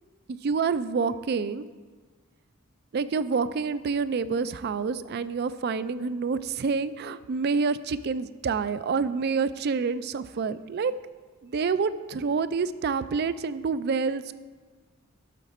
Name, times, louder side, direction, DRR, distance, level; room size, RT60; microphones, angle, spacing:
voice 1, 0.4-1.7 2.9-10.9 11.4-14.3, right 5 dB, 50° right, 14 dB, 0.3 m, -27 dB
11.5 x 6.5 x 4.2 m, 1.4 s
head